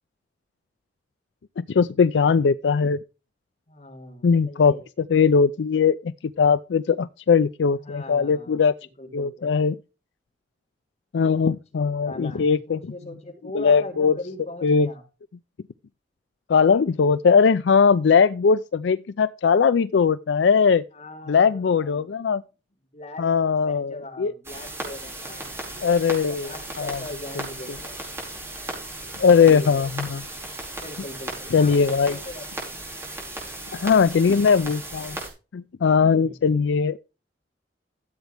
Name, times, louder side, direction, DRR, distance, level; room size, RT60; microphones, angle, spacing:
voice 1, 1.6-3.0 4.2-4.7 5.1-8.7 9.1-9.8 11.1-12.8 13.5-14.2 14.6-14.9 16.5-20.8 21.3-22.4 23.2-24.3 25.8-26.5 26.8-27.0 29.2-30.2 31.5-32.2 33.7-35.2 35.5-37.0, left 5 dB, 80° left, 0.4 m, -20 dB
voice 2, 3.7-4.8 7.7-8.7 9.0-9.5 11.5-11.6 12.0-15.0 20.9-22.2 22.9-26.2 26.4-28.0 29.4-29.9 30.7-32.5 36.0-36.4, left 1 dB, 40° left, 3.4 m, -40 dB
sound 1, 24.4-35.3, right 1 dB, 15° right, 4.9 m, -36 dB
14.0 x 8.2 x 3.4 m
head